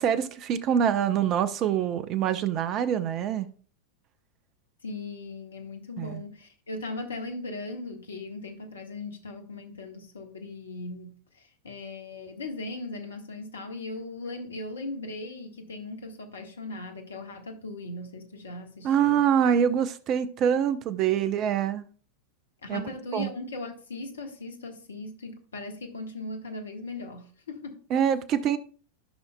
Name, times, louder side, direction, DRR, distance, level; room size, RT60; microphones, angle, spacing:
voice 1, 0.0-3.5 6.0-6.2 18.8-21.8 22.7-22.8 23.1-23.3 27.9-28.6, right 8 dB, 35° right, 0.7 m, -25 dB
voice 2, 4.8-19.3 22.6-27.8, left 2 dB, 70° left, 1.3 m, -38 dB
13.5 x 5.6 x 2.2 m
figure-of-eight pair, 90°, 0 cm